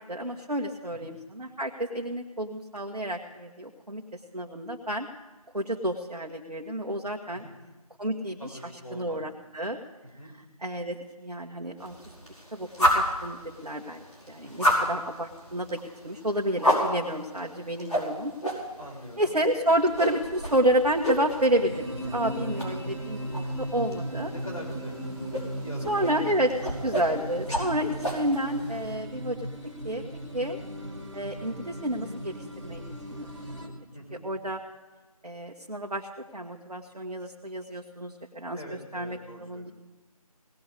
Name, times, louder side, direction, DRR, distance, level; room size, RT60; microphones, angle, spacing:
voice 1, 0.1-4.0 4.3-5.1 5.5-7.4 8.0-8.6 8.9-9.8 10.6-12.0 12.5-18.3 19.2-21.8 22.1-24.3 25.9-29.4 29.8-30.0 30.3-30.6 31.1-32.8 33.1-33.3 34.2-34.6 35.2-38.6 38.9-39.7, right 1 dB, 80° right, 0 dB, 1.2 m, -30 dB
voice 2, 8.4-9.2 10.1-10.3 14.4-14.6 18.8-19.4 22.5-22.8 24.3-25.0 25.6-26.5 33.9-34.3 38.5-39.7, equal, 60° left, -1 dB, 4.2 m, -44 dB
sound 1, 11.8-28.9, equal, 80° left, 5.0 m, -32 dB
sound 2, 19.7-33.7, right 1 dB, 45° right, 2.0 m, -37 dB
18.0 x 6.3 x 8.3 m, 1.2 s
figure-of-eight pair, 175°, 20 cm